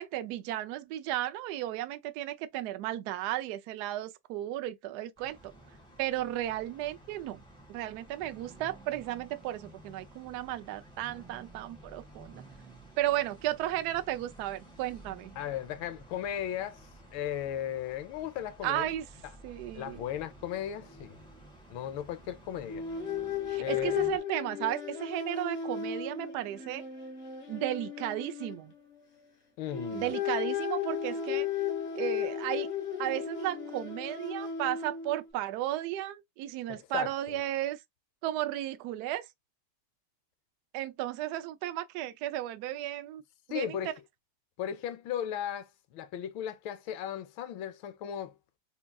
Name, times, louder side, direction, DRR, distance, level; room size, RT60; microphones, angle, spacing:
voice 1, 0.0-5.4 6.0-7.4 7.7-12.4 13.0-15.3 18.6-19.1 19.4-20.0 23.5-26.8 27.5-28.7 29.9-31.5 31.9-32.7 33.0-37.8 38.2-39.3 40.7-43.2 43.5-43.9, right 14 dB, 80° right, 0.9 m, -34 dB
sound 1, 5.2-24.2, right 2 dB, 5° left, 1.0 m, -53 dB
voice 2, 15.4-18.9 19.7-21.2 21.7-22.8 23.6-24.0 29.6-30.1 36.7-37.4 43.5-43.9 44.6-48.3, left 10 dB, 75° left, 1.4 m, -36 dB
sound 2, 20.4-20.6 20.9-21.1 22.6-29.2 29.6-35.3, left 8 dB, 30° left, 0.8 m, -35 dB
3.8 x 3.5 x 2.2 m
omnidirectional pair, 2.4 m